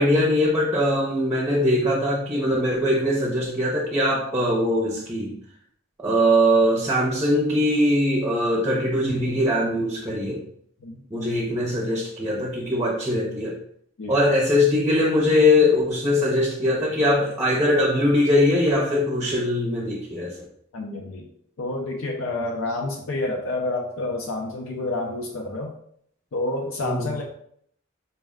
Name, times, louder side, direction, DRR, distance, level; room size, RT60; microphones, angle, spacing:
voice 1, 0.0-5.4 6.0-10.4 11.1-13.6 14.1-20.5 26.8-27.1, left 1 dB, 15° right, -1 dB, 0.5 m, -21 dB
voice 2, 20.7-21.3 21.6-25.7 26.3-27.2, left 2 dB, 85° left, 1 dB, 0.5 m, -29 dB
4.2 x 2.1 x 3.5 m, 0.66 s
head